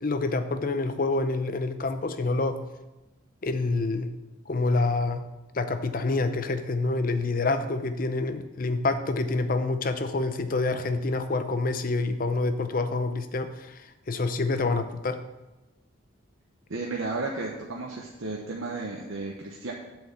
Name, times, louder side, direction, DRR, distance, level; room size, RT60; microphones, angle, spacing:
voice 1, 0.0-2.6 3.4-4.1 4.5-5.3 5.5-13.8 14.1-15.2, left 3 dB, 45° left, 9 dB, 0.6 m, -27 dB
voice 2, 16.7-19.7, right 3 dB, 80° right, -1 dB, 0.9 m, -33 dB
8.0 x 4.6 x 7.0 m, 1.1 s
head